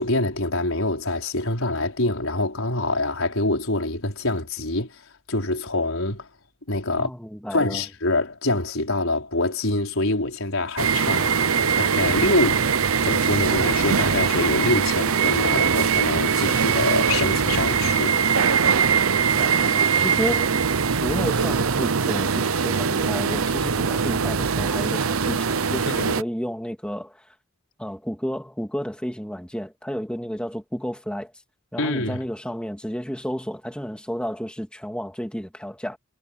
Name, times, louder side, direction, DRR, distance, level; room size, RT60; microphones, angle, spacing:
voice 1, 0.0-6.3 6.7-7.1 7.5-11.4 11.8-12.6 13.0-18.2 25.9-26.1 31.8-32.2, left 2 dB, 80° left, 4.9 m, -25 dB
voice 2, 6.9-7.8 19.2-20.6 21.0-27.2 27.8-31.3 31.7-36.0, equal, 5° left, 2.8 m, -31 dB
sound 1, 10.8-26.2, right 6 dB, 85° right, 0.9 m, -22 dB
head